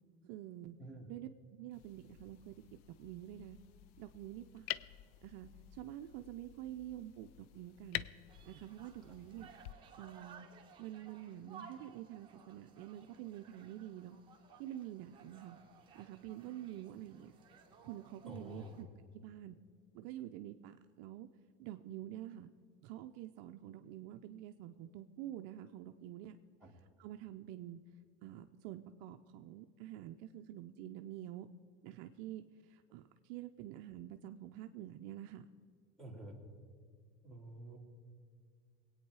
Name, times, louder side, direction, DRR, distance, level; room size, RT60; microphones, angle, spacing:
voice 1, 0.2-0.8 1.1-2.5 3.0-3.6 4.0-4.7 5.2-8.1 8.5-9.5 10.0-10.5 10.8-14.2 14.6-15.6 15.9-17.3 17.8-18.9 19.2-19.6 19.9-21.3 21.6-22.5 22.8-26.4 27.0-27.8 28.2-31.5 31.8-35.5, right 12 dB, 50° right, 7 dB, 0.5 m, -48 dB
sound 1, 1.7-9.7, left 14 dB, 50° left, 0.4 m, -48 dB
sound 2, 8.3-18.8, right 6 dB, 15° right, 1.6 m, -59 dB
voice 2, 18.3-18.8 26.6-26.7 36.0-36.4 37.2-37.8, right 1 dB, ahead, 1 dB, 2.1 m, -49 dB
21.5 x 8.9 x 4.7 m, 2.1 s
supercardioid pair, 155°, 31 cm